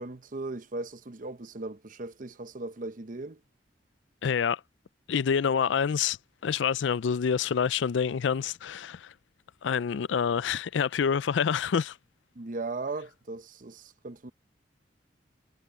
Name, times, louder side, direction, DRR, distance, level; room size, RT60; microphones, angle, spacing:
voice 1, 0.0-3.4 12.3-14.3, right 3 dB, 45° right, 0.8 m, -37 dB
voice 2, 4.2-4.6 5.1-6.2 6.4-9.1 9.6-12.0, left 7 dB, 80° left, 0.4 m, -27 dB
head